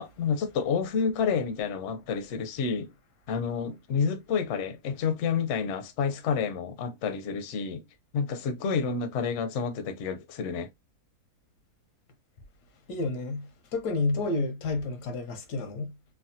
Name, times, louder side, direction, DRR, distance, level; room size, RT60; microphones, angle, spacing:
voice 1, 0.0-2.9 3.3-7.8 8.1-10.7, left 6 dB, 65° left, 0.8 m, -29 dB
voice 2, 12.9-16.0, left 3 dB, 85° left, 1.3 m, -30 dB
3.4 x 2.1 x 2.6 m
omnidirectional pair, 1.7 m